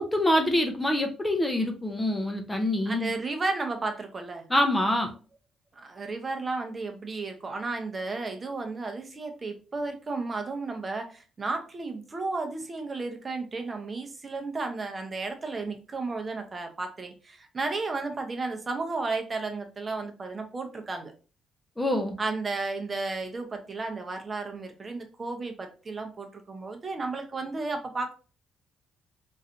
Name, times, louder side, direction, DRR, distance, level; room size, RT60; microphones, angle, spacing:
voice 1, 0.0-3.1 4.5-5.1 21.8-22.2, left 1 dB, 10° left, 3 dB, 0.6 m, -25 dB
voice 2, 2.9-4.5 5.8-21.1 22.2-28.1, right 3 dB, 30° right, 4 dB, 0.7 m, -33 dB
3.1 x 2.6 x 2.7 m, 0.35 s
cardioid pair, 90°, 0 cm